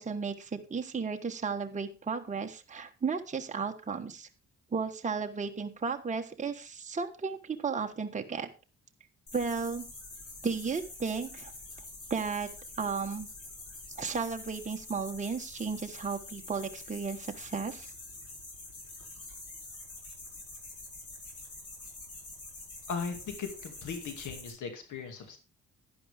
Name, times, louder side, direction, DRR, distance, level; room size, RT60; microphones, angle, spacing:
voice 1, 0.0-4.3 4.7-8.5 9.3-9.9 10.4-11.5 12.1-12.5 12.8-13.3 14.0-17.9, right 5 dB, 25° right, 4 dB, 1.3 m, -34 dB
sound 1, 9.3-24.5, left 2 dB, 50° left, 6.0 m, -46 dB
voice 2, 22.9-25.4, left 5 dB, 75° left, 6 dB, 2.4 m, -38 dB
11.0 x 10.0 x 3.5 m, 0.31 s
cardioid pair, 90°, 30 cm